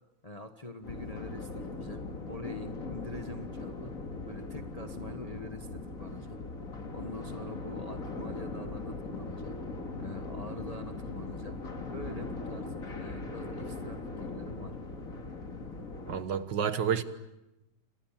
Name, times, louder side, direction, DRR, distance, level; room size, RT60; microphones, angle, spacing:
voice 1, 0.2-3.9 4.2-6.4 6.9-9.6 10.0-14.8, left 2 dB, 20° left, 6 dB, 1.3 m, -45 dB
sound 1, 0.8-16.2, left 3 dB, 45° left, 2.8 m, -40 dB
voice 2, 16.1-17.0, right 7 dB, 65° right, 11 dB, 1.9 m, -29 dB
29.5 x 27.0 x 7.4 m, 0.98 s
omnidirectional pair, 2.1 m